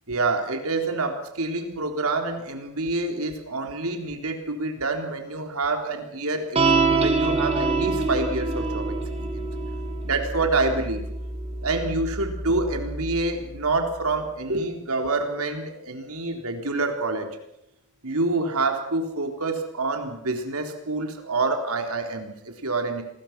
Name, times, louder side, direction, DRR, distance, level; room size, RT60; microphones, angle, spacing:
voice 1, 0.1-6.6 6.8-9.5 10.0-11.0 11.6-17.3 18.0-23.0, right 3 dB, 75° right, 4 dB, 3.8 m, -27 dB
sound 1, 6.5-13.2, right 3 dB, 30° right, 1.8 m, -26 dB
28.0 x 21.0 x 6.1 m, 0.80 s
head